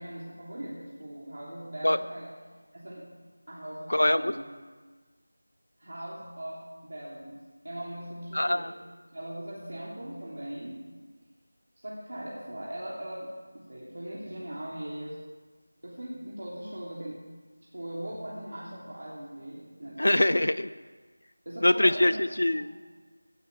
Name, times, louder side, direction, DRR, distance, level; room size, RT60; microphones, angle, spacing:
voice 1, 0.0-2.3 2.7-3.0 3.5-4.4 5.8-7.4 7.6-8.7 9.1-10.8 11.8-15.2 15.8-17.2 17.7-20.3 21.4-22.6, right 1 dB, 65° right, -5 dB, 3.0 m, -40 dB
voice 2, 3.9-4.3 8.3-8.7 20.0-20.7 21.6-22.7, left 1 dB, 70° left, 14 dB, 0.5 m, -23 dB
15.5 x 6.4 x 8.6 m, 1.4 s
figure-of-eight pair, 170°, 0 cm